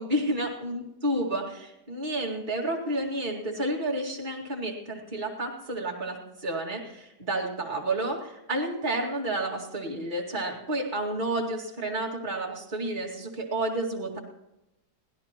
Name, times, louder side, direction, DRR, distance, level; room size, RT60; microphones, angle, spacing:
voice 1, 0.0-14.2, right 1 dB, 25° right, -1 dB, 2.3 m, -30 dB
23.5 x 16.5 x 3.0 m, 0.91 s
omnidirectional pair, 1.9 m